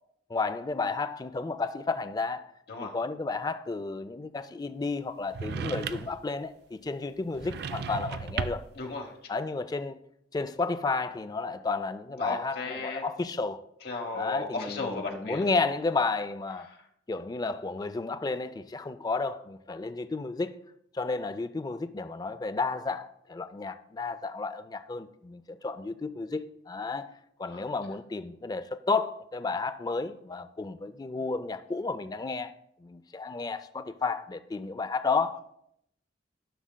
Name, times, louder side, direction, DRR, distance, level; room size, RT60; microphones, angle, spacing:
voice 1, 0.3-2.4 2.8-8.6 9.3-10.0 10.3-13.6 14.1-16.7 17.1-20.5 20.9-27.1 27.4-32.5 32.8-35.4, left 3 dB, 20° left, 0.3 m, -32 dB
sound 1, 5.3-6.3 7.3-8.8, right 5 dB, 60° right, 0.3 m, -35 dB
voice 2, 8.8-9.1 12.2-13.0 13.8-15.5 27.5-27.6, left 3 dB, 60° left, 1.0 m, -35 dB
13.5 x 6.2 x 2.2 m
head